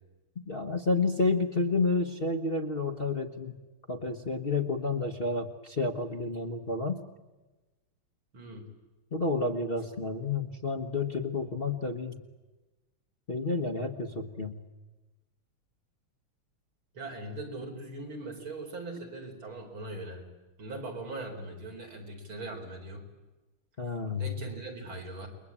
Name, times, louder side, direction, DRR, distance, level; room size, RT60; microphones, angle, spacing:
voice 1, 0.5-3.5 3.9-7.0 9.1-12.2 13.3-14.5 23.8-24.3, left 3 dB, 30° left, 4 dB, 1.2 m, -30 dB
voice 2, 8.3-8.6 16.9-20.3 20.6-23.0 24.2-25.3, right 2 dB, 75° right, 2 dB, 5.1 m, -40 dB
29.0 x 22.0 x 8.7 m, 1.2 s
omnidirectional pair, 2.3 m